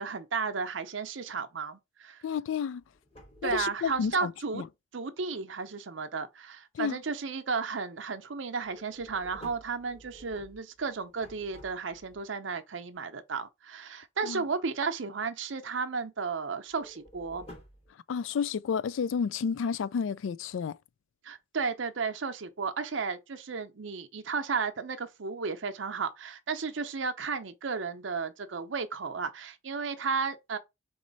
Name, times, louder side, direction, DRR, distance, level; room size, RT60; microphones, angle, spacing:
voice 1, 0.0-2.2 3.4-4.6 4.9-17.4 21.2-30.6, right 5 dB, 80° right, 0.7 m, -33 dB
voice 2, 2.2-2.8 3.4-4.6 6.7-7.0 14.2-14.4 18.1-20.8, left 6 dB, 90° left, 0.3 m, -31 dB
sound 1, 2.8-4.1 8.6-12.2 16.7-17.9, equal, 30° left, 1.6 m, -52 dB
4.3 x 3.1 x 3.9 m
head